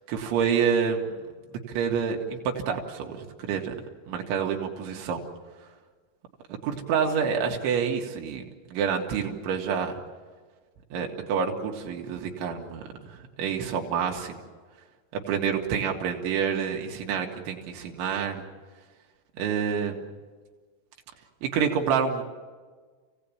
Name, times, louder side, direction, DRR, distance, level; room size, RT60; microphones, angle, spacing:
voice 1, 0.1-1.1 1.7-2.4 2.7-3.7 4.1-5.2 6.6-8.4 8.7-10.0 10.9-12.8 13.1-14.4 15.1-18.4 19.4-20.0 21.4-22.2, right 7 dB, 90° right, 1 dB, 4.3 m, -28 dB
29.5 x 17.5 x 8.7 m, 1.5 s
omnidirectional pair, 5.3 m